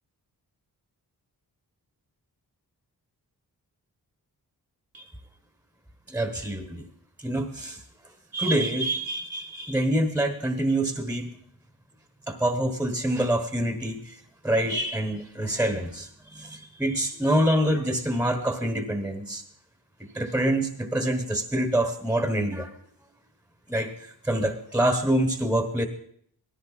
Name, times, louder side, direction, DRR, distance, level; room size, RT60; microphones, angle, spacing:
voice 1, 6.1-6.8 7.2-7.8 8.3-11.3 12.3-14.2 14.4-19.4 20.1-22.7 23.7-23.9 24.2-25.9, right 1 dB, 5° right, 7 dB, 1.1 m, -26 dB
18.0 x 13.5 x 4.1 m, 0.64 s
wide cardioid pair, 170°, 38 cm